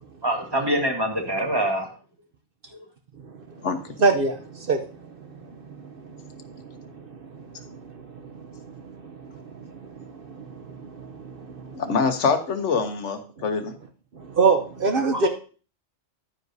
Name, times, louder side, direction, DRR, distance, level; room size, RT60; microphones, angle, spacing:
voice 1, 0.2-1.9 2.7-2.8 15.1-15.3, right 1 dB, 20° right, 1.4 m, -25 dB
voice 2, 4.0-4.8 5.8-8.6 9.0-11.8 14.2-15.3, right 4 dB, 55° right, 0.8 m, -27 dB
voice 3, 11.7-13.7, left 5 dB, 70° left, 1.2 m, -24 dB
10.5 x 9.6 x 2.7 m
omnidirectional pair, 1.3 m